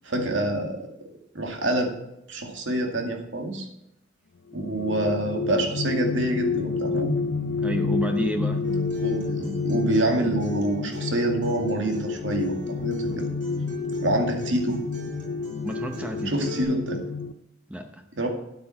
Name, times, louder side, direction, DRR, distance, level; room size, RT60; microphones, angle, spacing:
voice 1, 0.0-0.9 1.3-1.9 2.3-3.7 4.5-7.1 9.0-12.6 12.8-13.2 14.0-14.8 16.3-17.0 18.1-18.3, right 1 dB, 85° right, 3 dB, 2.3 m, -26 dB
sound 1, 4.5-17.3, left 4 dB, 75° left, 0.6 m, -29 dB
voice 2, 7.6-8.7 15.6-16.3 17.7-18.0, equal, 5° right, 5 dB, 0.7 m, -29 dB
Acoustic guitar, 8.6-16.6, left 2 dB, 45° right, 4.9 m, -41 dB
9.7 x 8.6 x 5.9 m, 0.83 s
head